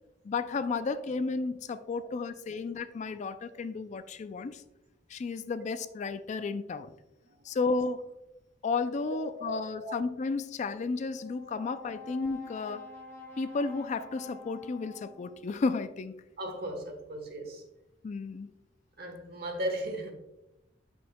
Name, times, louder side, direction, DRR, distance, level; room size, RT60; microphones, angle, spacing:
voice 1, 0.2-4.6 5.1-6.9 7.4-8.0 8.6-12.8 13.4-16.1 18.0-18.5, left 4 dB, 40° left, 12 dB, 0.3 m, -33 dB
Brass instrument, 11.1-15.5, left 3 dB, 15° left, 2.2 m, -48 dB
voice 2, 16.4-17.6 19.0-20.1, right 1 dB, 55° right, 4 dB, 1.2 m, -36 dB
7.8 x 5.4 x 2.2 m, 0.91 s
head